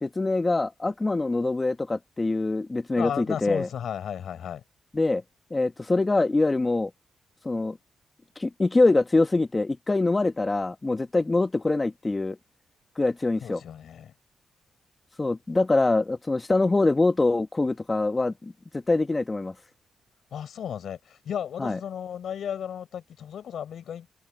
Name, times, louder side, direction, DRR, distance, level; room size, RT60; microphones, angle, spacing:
voice 1, 0.0-3.7 4.9-5.2 5.5-6.9 7.4-7.8 8.3-12.4 13.0-13.6 15.2-19.5 21.6-21.8, left 2 dB, 25° left, 1.3 m, -24 dB
voice 2, 3.0-4.6 13.4-14.1 20.3-24.1, left 9 dB, 70° left, 4.8 m, -34 dB
cardioid pair, 70°, 0 cm